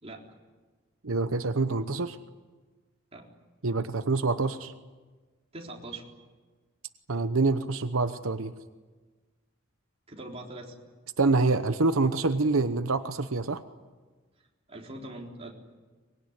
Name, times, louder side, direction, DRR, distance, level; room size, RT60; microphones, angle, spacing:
voice 1, 0.0-0.3 3.1-3.3 5.5-6.1 10.1-10.8 14.7-15.5, right 2 dB, 30° right, 0 dB, 3.9 m, -42 dB
voice 2, 1.0-2.2 3.6-4.7 7.1-8.5 11.2-13.6, right 3 dB, 85° right, 10 dB, 0.9 m, -26 dB
24.5 x 21.5 x 9.9 m, 1.3 s
head